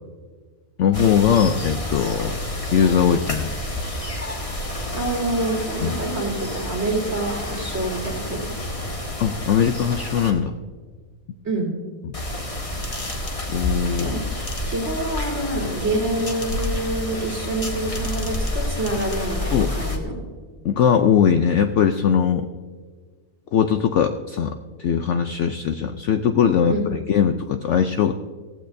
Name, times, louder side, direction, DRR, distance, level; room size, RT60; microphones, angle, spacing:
voice 1, 0.8-2.4 2.7-3.5 5.8-6.0 9.2-10.6 13.5-14.2 15.6-15.7 17.1-17.3 19.5-19.7 20.6-22.5 23.5-28.1, left 8 dB, 65° left, 8 dB, 0.7 m, -20 dB
sound 1, 0.9-10.3 12.1-20.0, left 1 dB, 25° left, 1.4 m, -29 dB
voice 2, 4.9-8.4 11.4-11.7 14.0-14.2 14.6-20.3 26.7-26.9, right 1 dB, 45° right, -2 dB, 3.4 m, -27 dB
17.5 x 15.0 x 2.6 m, 1.5 s
omnidirectional pair, 1.7 m